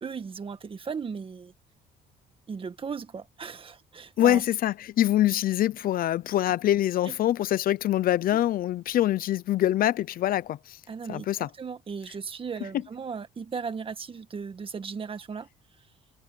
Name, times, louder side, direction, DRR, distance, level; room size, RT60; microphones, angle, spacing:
voice 1, 0.0-1.5 2.5-4.4 7.1-7.2 10.9-15.5, right 5 dB, 30° right, 1.9 m, -36 dB
voice 2, 4.2-10.8 11.1-11.5, left 13 dB, 60° left, 0.8 m, -24 dB
cardioid pair, 110°, 17 cm